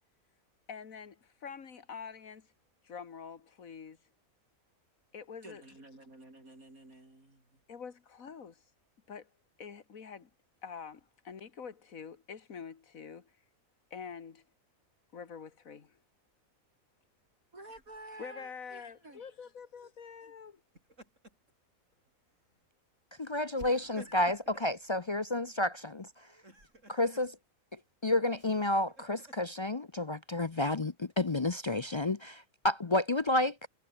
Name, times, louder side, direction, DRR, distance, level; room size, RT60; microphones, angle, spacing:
voice 1, 0.7-2.5 2.8-4.0 5.1-5.6 7.7-8.6 9.1-9.3 9.6-10.3 10.6-13.3 13.9-14.4 15.1-16.0 18.2-20.6, left 6 dB, 75° left, 2.1 m, -46 dB
voice 2, 5.4-7.6 17.5-19.2, right 2 dB, 85° right, 8.1 m, -51 dB
Laughter, 17.7-18.3 20.6-21.5 21.9-22.1 23.6-24.7 26.3-27.3 28.4-29.6, right 1 dB, 60° right, 8.5 m, -53 dB
voice 3, 23.2-26.1 26.9-27.4 28.0-33.7, left 2 dB, 35° left, 0.5 m, -30 dB
omnidirectional pair, 1.4 m